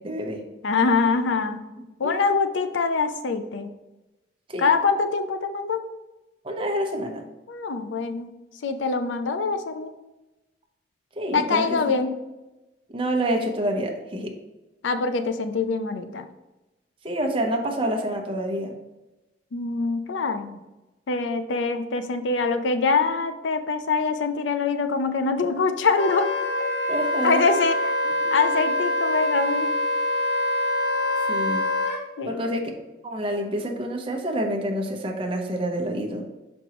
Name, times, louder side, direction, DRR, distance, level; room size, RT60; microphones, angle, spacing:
voice 1, 0.0-0.4 2.0-2.2 4.5-4.7 6.4-7.2 11.2-11.9 12.9-14.3 17.0-18.7 26.9-27.5 28.0-28.1 28.5-28.6 31.3-31.6 32.2-32.7 33.0-36.2, right 1 dB, 30° right, 2 dB, 0.8 m, -27 dB
voice 2, 0.6-1.6 2.0-3.7 4.6-5.8 7.5-8.3 8.6-9.9 11.3-12.1 14.8-16.2 19.5-20.6 21.1-26.3 27.2-27.9 28.3-29.7 32.2-32.4, left 4 dB, 80° left, 9 dB, 0.5 m, -24 dB
Wind instrument woodwind instrument, 25.9-32.0, left 1 dB, 60° left, 1.2 m, -25 dB
6.0 x 5.3 x 3.0 m, 1.0 s
head